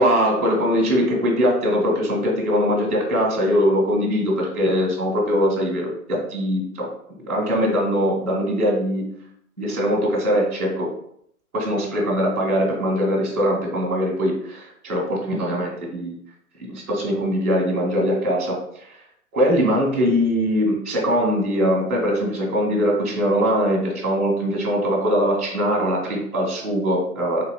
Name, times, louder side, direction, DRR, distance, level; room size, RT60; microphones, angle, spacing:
voice 1, 0.0-6.9 7.3-9.0 9.6-10.9 11.5-16.1 16.6-19.0 19.3-27.4, equal, 5° right, -11 dB, 0.4 m, -21 dB
3.5 x 2.5 x 3.3 m, 0.70 s
figure-of-eight pair, 125°, 44 cm